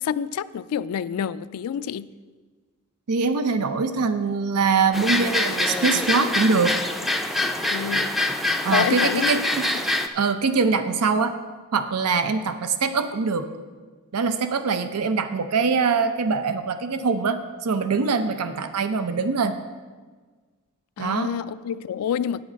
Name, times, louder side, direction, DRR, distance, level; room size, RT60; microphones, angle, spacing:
voice 1, 0.0-2.1 7.7-8.2 8.7-9.3 9.7-9.8 21.0-22.4, left 8 dB, 75° left, 0.3 m, -28 dB
voice 2, 3.1-6.8 8.6-9.6 10.1-11.4 11.7-13.5 14.1-19.6 21.0-21.3, right 4 dB, 85° right, 0.6 m, -23 dB
sound 1, 4.9-10.1, left 2 dB, ahead, 0.4 m, -24 dB
9.1 x 8.6 x 5.2 m
head